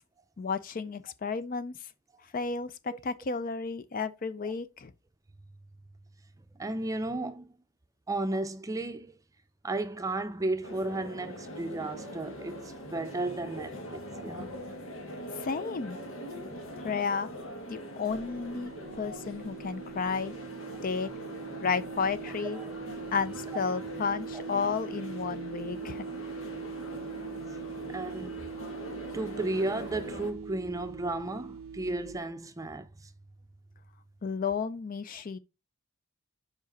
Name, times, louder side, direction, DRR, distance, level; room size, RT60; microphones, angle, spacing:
voice 1, 0.4-1.7 2.3-4.9 15.4-16.0 16.8-17.3 17.7-18.7 19.0-20.3 20.8-21.1 21.6-22.6 23.1-26.0 34.2-35.4, left 5 dB, 40° left, 0.4 m, -32 dB
voice 2, 6.6-7.5 8.1-9.1 9.6-14.6 20.7-20.8 22.5-22.7 27.9-28.4 29.1-33.1, right 2 dB, 15° right, 0.5 m, -34 dB
sound 1, 10.6-30.3, equal, 85° left, 1.4 m, -42 dB
sound 2, 18.1-32.2, right 6 dB, 70° right, 0.3 m, -42 dB
5.2 x 5.0 x 3.8 m
head